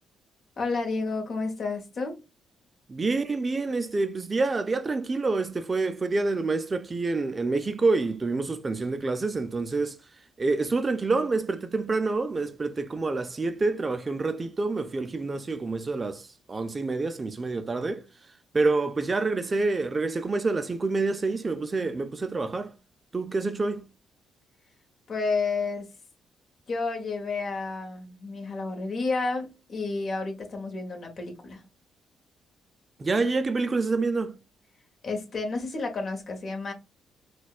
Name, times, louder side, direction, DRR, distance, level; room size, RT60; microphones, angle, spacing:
voice 1, 0.6-2.2 25.1-25.9 26.7-31.6 35.0-36.7, left 3 dB, 50° left, 1.1 m, -31 dB
voice 2, 2.9-10.0 10.4-18.0 18.5-22.7 23.1-23.8 33.0-34.4, right 3 dB, 30° right, 0.4 m, -27 dB
4.2 x 2.2 x 2.3 m
cardioid pair, 90°, 0 cm